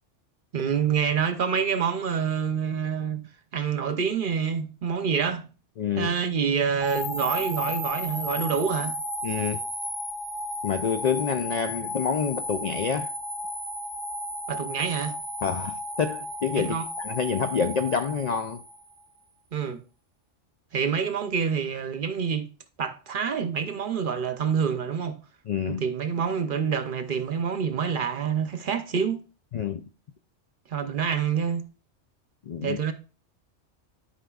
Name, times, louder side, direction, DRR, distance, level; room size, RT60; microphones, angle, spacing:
voice 1, 0.5-3.2 3.5-5.5 6.0-8.9 14.5-15.1 16.7-16.8 19.5-19.8 20.7-22.5 22.8-25.2 25.7-29.2 30.7-31.6 32.6-32.9, right 7 dB, 50° right, 0.8 m, -27 dB
voice 2, 5.8-6.1 9.2-9.6 10.6-13.1 15.4-18.6 25.5-25.8 29.5-29.8 32.4-32.8, left 6 dB, 75° left, 0.3 m, -27 dB
sound 1, 6.8-19.0, equal, 20° left, 1.8 m, -33 dB
11.5 x 5.0 x 2.3 m
omnidirectional pair, 1.3 m